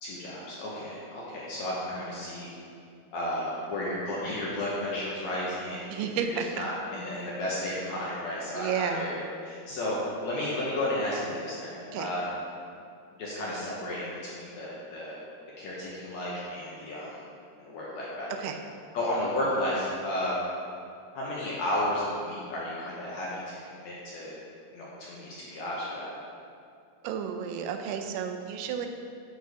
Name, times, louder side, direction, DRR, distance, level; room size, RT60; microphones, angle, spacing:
voice 1, 0.0-2.5 3.1-6.0 6.6-12.2 13.1-15.2 15.6-17.2 17.6-18.4 18.9-20.3 21.1-24.4 24.7-26.1, left 1 dB, 75° left, -6 dB, 1.6 m, -33 dB
voice 2, 5.9-6.7 8.5-9.1 11.9-12.1 18.4-18.6 27.0-28.9, right 7 dB, 85° right, 5 dB, 2.5 m, -32 dB
8.6 x 4.6 x 4.7 m, 2.4 s
omnidirectional pair, 4.6 m